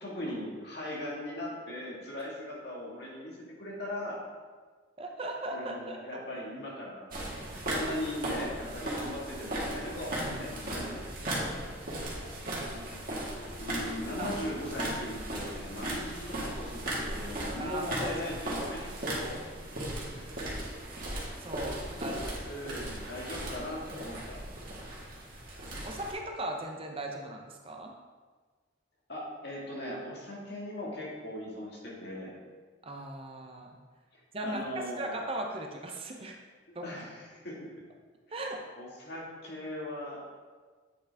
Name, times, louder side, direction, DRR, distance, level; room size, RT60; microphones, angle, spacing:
voice 1, 0.0-4.2 5.5-7.1 7.6-11.6 13.6-19.4 20.1-20.4 21.9-24.4 29.1-32.4 34.1-35.1 36.8-37.7 38.3-38.4 38.8-40.3, left 1 dB, 60° left, -4 dB, 1.8 m, -39 dB
voice 2, 5.0-6.0 12.2-13.0 14.2-14.3 17.6-18.1 18.5-18.7 21.4-22.2 25.8-27.9 32.8-33.7 34.3-36.4 36.7-36.9 38.3-38.6, right 1 dB, 30° right, 2 dB, 0.6 m, -38 dB
sound 1, 7.1-26.1, right 1 dB, 50° right, 1.8 m, -37 dB
8.3 x 5.3 x 3.4 m, 1.4 s
head